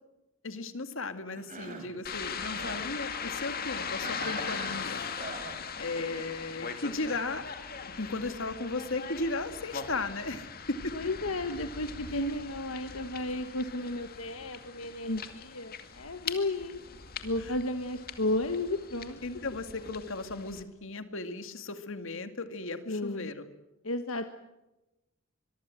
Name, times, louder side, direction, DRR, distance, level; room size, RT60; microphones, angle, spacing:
voice 1, 0.4-5.0 5.8-7.4 7.8-11.0 17.4-17.6 19.2-23.5, left 2 dB, 65° left, 9 dB, 2.2 m, -36 dB
Cough, 1.3-1.9 2.3-2.9 4.0-5.6, right 3 dB, 40° right, 5.0 m, -42 dB
sound 1, 2.0-20.6, left 6 dB, 45° left, 2.3 m, -40 dB
voice 2, 10.9-16.8 17.2-19.2 22.9-23.3 23.8-24.3, left 2 dB, 85° left, 7 dB, 1.4 m, -33 dB
25.0 x 23.0 x 7.6 m, 0.98 s
head